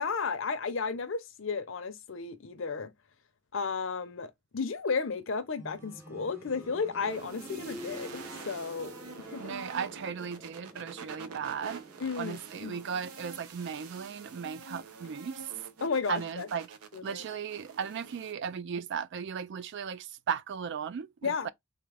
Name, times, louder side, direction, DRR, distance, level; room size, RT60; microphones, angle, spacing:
voice 1, 0.0-2.9 3.5-8.9 9.3-9.5 12.0-12.8 15.8-16.5 16.9-17.2 21.2-21.5, left 5 dB, 60° left, 0.6 m, -33 dB
sound 1, 5.6-16.4 17.7-17.8, right 1 dB, 10° right, 0.6 m, -49 dB
sound 2, 7.0-18.3, right 5 dB, 90° right, 0.6 m, -47 dB
voice 2, 9.4-11.8 12.2-15.4 16.1-16.7 17.0-21.5, right 7 dB, 50° right, 0.3 m, -36 dB
3.5 x 2.0 x 3.3 m
head